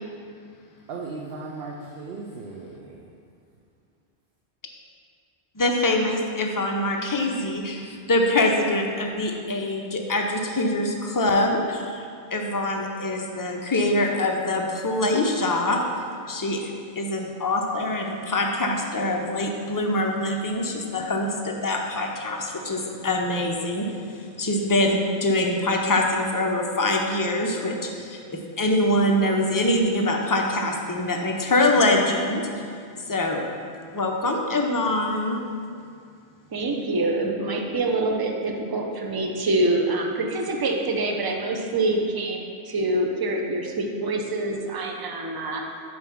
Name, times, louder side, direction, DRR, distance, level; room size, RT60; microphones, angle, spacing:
voice 1, 0.9-3.1, right 3 dB, 65° right, -1 dB, 0.8 m, -37 dB
voice 2, 5.6-15.8 16.3-32.7 33.1-33.4 33.9-35.4, left 1 dB, 30° left, 1 dB, 0.4 m, -24 dB
voice 3, 36.5-45.6, right 2 dB, 30° right, 1 dB, 0.5 m, -25 dB
5.4 x 4.8 x 5.7 m, 2.3 s
omnidirectional pair, 1.1 m